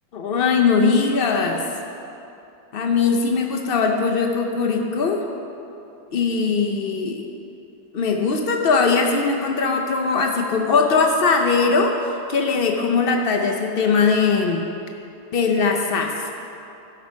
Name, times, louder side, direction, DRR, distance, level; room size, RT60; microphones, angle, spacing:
voice 1, 0.1-1.6 2.7-5.2 6.1-7.3 7.9-14.6 15.3-16.3, left 4 dB, 90° left, 3 dB, 0.5 m, -20 dB
13.0 x 5.5 x 5.2 m, 2.8 s
omnidirectional pair, 1.9 m